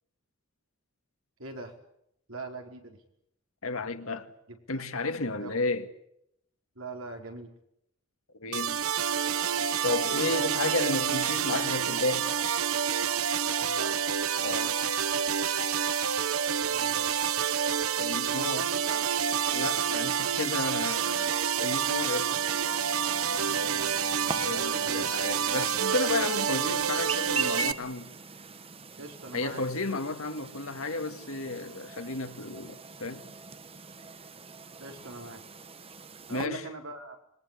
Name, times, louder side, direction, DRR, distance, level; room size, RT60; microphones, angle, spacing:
voice 1, 1.4-1.7 2.3-3.0 4.5-4.8 5.4-5.6 6.7-7.5 10.2-10.4 13.6-14.0 16.7-17.1 18.2-19.1 23.3-23.9 24.3-25.1 29.0-29.7 34.8-35.4 36.3-37.2, right 3 dB, 70° right, 4.8 m, -42 dB
voice 2, 3.6-4.3 4.7-5.9 8.4-8.9 9.8-12.3 14.4-14.8 18.0-18.7 19.5-22.3 24.4-28.1 29.3-33.2 36.3-36.7, left 2 dB, 80° left, 2.2 m, -32 dB
sound 1, 8.5-27.7, right 8 dB, 90° right, 1.0 m, -28 dB
Chirp tweet, 22.3-36.5, right 4 dB, 25° right, 1.2 m, -42 dB
26.0 x 21.5 x 8.4 m
head